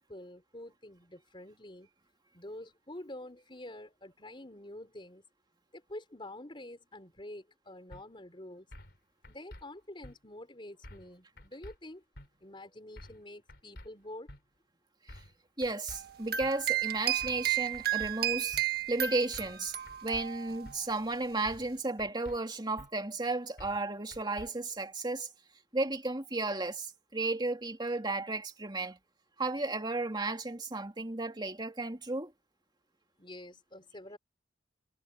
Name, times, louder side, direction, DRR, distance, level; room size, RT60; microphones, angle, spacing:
voice 1, 0.0-1.9 2.3-5.2 5.7-8.7 9.3-12.0 12.4-14.3 33.2-34.2, left 1 dB, 30° left, 4.4 m, -47 dB
sound 1, 7.9-8.0 8.7-9.0 9.2-9.6 10.0-10.2 10.8-11.1 11.4-11.8 12.2-12.3 13.0-13.2 13.5-13.9 14.3-14.4 15.1-15.3 15.6-16.0 16.4-16.5 17.2-17.5 17.7-18.1 18.5-18.6 19.3-19.6 19.9-20.2 20.6-20.8 21.5-21.7 22.0-22.4 22.8-22.9 23.6-23.8 24.1-24.5, left 1 dB, 65° left, 4.0 m, -49 dB
voice 2, 15.6-18.6 18.9-19.8 20.0-25.3 25.7-29.0 29.4-32.3, right 2 dB, 25° right, 2.8 m, -34 dB
sound 2, 15.9-20.8, right 12 dB, 60° right, 1.5 m, -33 dB
head